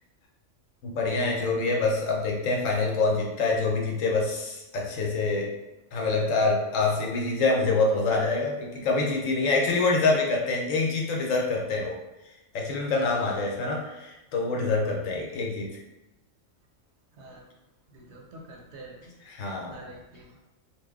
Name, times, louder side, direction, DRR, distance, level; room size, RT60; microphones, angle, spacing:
voice 1, 0.8-5.5 5.9-12.0 12.5-15.7 19.2-19.8, left 3 dB, 75° left, -1 dB, 1.0 m, -26 dB
voice 2, 12.9-13.4 17.2-17.4 17.9-19.1 19.7-20.4, right 3 dB, 65° right, 0 dB, 0.8 m, -45 dB
3.1 x 2.0 x 3.4 m, 1.0 s
omnidirectional pair, 1.3 m